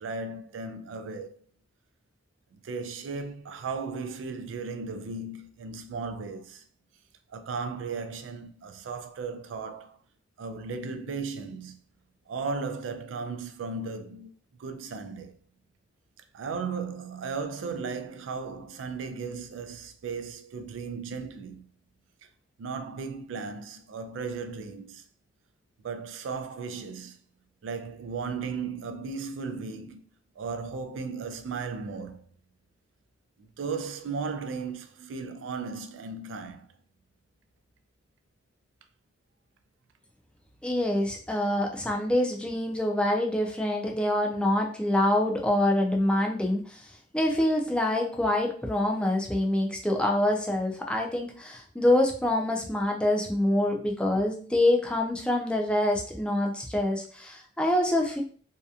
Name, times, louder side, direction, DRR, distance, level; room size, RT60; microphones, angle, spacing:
voice 1, 0.0-1.4 2.5-6.6 7.3-10.0 10.4-11.8 12.3-14.3 14.6-15.4 16.3-21.7 22.6-25.0 25.8-27.2 27.6-30.1 30.4-32.3 33.4-36.7, right 4 dB, 85° right, 0.3 m, -36 dB
voice 2, 40.6-46.8 47.1-58.2, left 1 dB, 5° left, 0.4 m, -26 dB
2.7 x 2.2 x 2.3 m
head